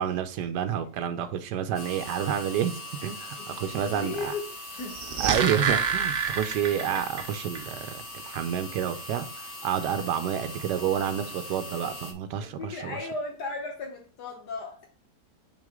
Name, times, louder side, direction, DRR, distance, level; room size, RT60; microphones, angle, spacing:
voice 1, 0.0-4.3 5.2-13.0, right 9 dB, 85° right, 1.3 m, -29 dB
sound 1, 1.7-12.1, left 1 dB, 45° left, 1.3 m, -41 dB
voice 2, 3.0-4.4 4.8-5.0 12.4-14.8, left 3 dB, 75° left, 1.6 m, -36 dB
sound 2, 4.8-7.3 7.5-7.6, right 6 dB, 50° right, 0.6 m, -27 dB
6.2 x 4.6 x 3.7 m
omnidirectional pair, 1.8 m